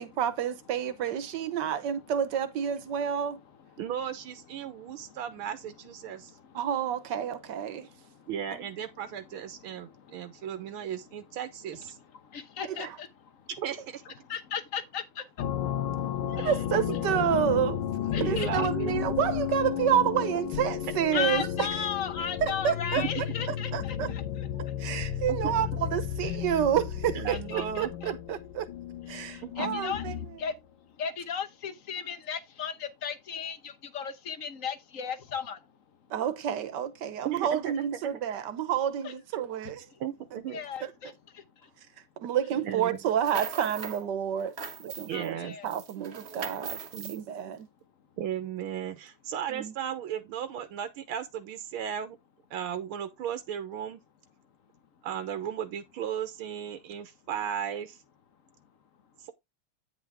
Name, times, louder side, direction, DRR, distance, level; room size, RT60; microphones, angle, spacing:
voice 1, 0.0-3.4 6.5-7.9 8.6-8.7 12.7-12.9 16.3-17.8 18.2-21.7 22.4-23.0 23.7-24.1 24.8-28.7 29.1-30.1 36.1-39.9 40.8-40.9 42.2-44.5 44.8-46.8 47.1-47.7 49.5-49.7, right 9 dB, 60° right, 1.5 m, -29 dB
voice 2, 3.1-3.8 4.6-5.2 6.0-6.6 7.7-8.3 9.1-10.9 11.7-13.5 14.0-16.6 18.1-18.7 21.1-24.8 26.2-26.3 27.3-28.1 29.0-30.0 30.4-30.6 30.9-35.8 39.0-39.1 39.9-40.0 40.5-41.7 45.1-45.7, left 7 dB, 50° left, 1.0 m, -37 dB
voice 3, 3.8-6.3 8.3-12.0 13.6-14.0 16.3-16.5 16.9-17.0 17.5-17.7 18.2-18.9 23.0-23.1 25.3-25.9 27.2-27.9 29.4-29.8 37.3-37.7 40.0-40.6 42.6-43.0 45.0-45.6 46.9-47.1 48.2-52.2 52.5-54.0 55.0-58.0, right 9 dB, 90° right, 1.9 m, -35 dB
sound 1, 15.4-30.4, left 10 dB, 85° left, 1.8 m, -33 dB
sound 2, 43.0-44.0 44.4-45.3 45.7-47.2, right 6 dB, 45° right, 0.9 m, -40 dB
9.2 x 5.8 x 3.5 m
omnidirectional pair, 2.3 m